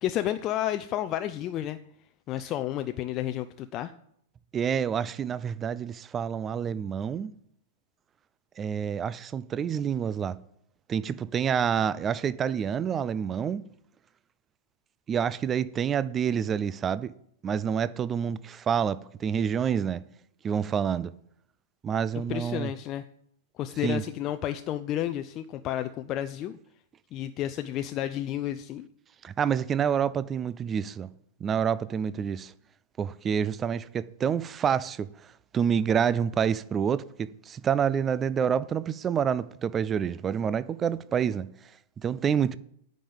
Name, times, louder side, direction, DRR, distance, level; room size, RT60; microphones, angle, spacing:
voice 1, 0.0-1.8 2.3-3.9 22.3-23.0 23.6-26.6 27.1-28.9, left 12 dB, 35° left, 0.6 m, -31 dB
voice 2, 4.5-7.3 8.6-10.4 10.9-13.6 15.1-17.1 17.4-20.0 20.4-21.1 21.8-22.7 23.8-24.0 29.2-31.1 31.4-32.5 33.0-41.5 42.0-42.6, right 8 dB, 25° right, 0.5 m, -28 dB
9.9 x 5.2 x 7.8 m
hypercardioid pair, 105°, 0 cm